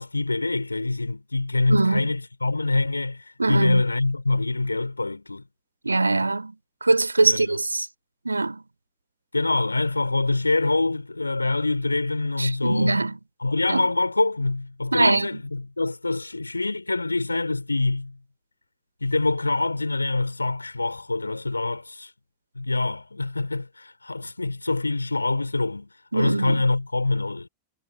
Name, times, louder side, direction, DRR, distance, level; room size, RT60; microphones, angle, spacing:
voice 1, 0.0-5.4 7.2-7.6 9.3-13.0 13.4-18.2 19.0-22.1 22.6-27.5, left 2 dB, 80° left, 4.7 m, -25 dB
voice 2, 1.7-2.1 3.4-3.8 5.8-6.5 6.8-7.9 8.2-8.6 12.4-13.2 13.7-13.9 14.9-15.4 26.1-26.6, right 3 dB, 80° right, 3.1 m, -22 dB
figure-of-eight pair, 90°, 0 cm